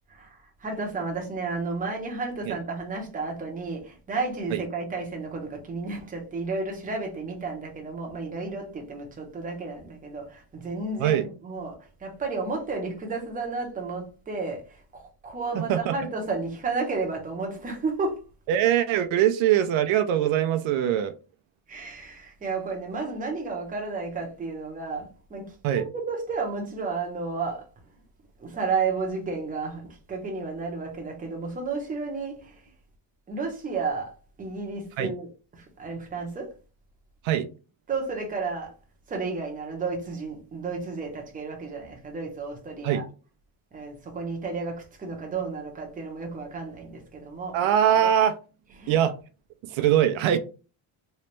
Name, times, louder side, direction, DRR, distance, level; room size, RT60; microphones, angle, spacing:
voice 1, 0.1-18.2 21.7-27.6 28.4-32.6 33.3-34.1 34.4-35.3 35.5-36.5 37.9-38.7 39.1-43.1 43.7-47.6 48.8-49.0, right 4 dB, 15° right, 0.7 m, -32 dB
voice 2, 15.5-15.9 18.5-21.1 25.6-25.8 35.0-35.1 37.2-37.5 42.8-43.0 47.5-48.4 48.9-49.2 49.6-50.4, right 10 dB, 70° right, 0.5 m, -22 dB
3.2 x 3.0 x 3.0 m
cardioid pair, 180°, 50 cm